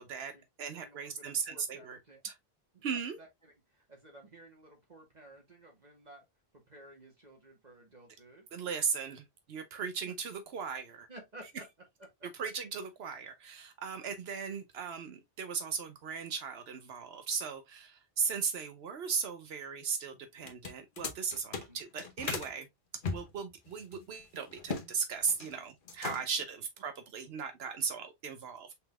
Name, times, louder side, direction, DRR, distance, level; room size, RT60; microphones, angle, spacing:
voice 1, 0.0-0.3 0.6-2.0 2.2-2.4 2.8-3.2 8.5-11.1 12.4-22.7 23.1-28.8, right 6 dB, 80° right, 1.0 m, -37 dB
voice 2, 0.7-2.2 2.7-6.2 6.7-8.5 10.0-10.1 11.1-11.7 12.0-12.3 21.5-21.8, right 1 dB, 45° right, 1.4 m, -54 dB
sound 1, 20.4-22.5 23.0-24.9 25.2-25.6 25.9-26.5, left 4 dB, 55° left, 1.0 m, -39 dB
5.6 x 3.7 x 2.2 m
omnidirectional pair, 1.0 m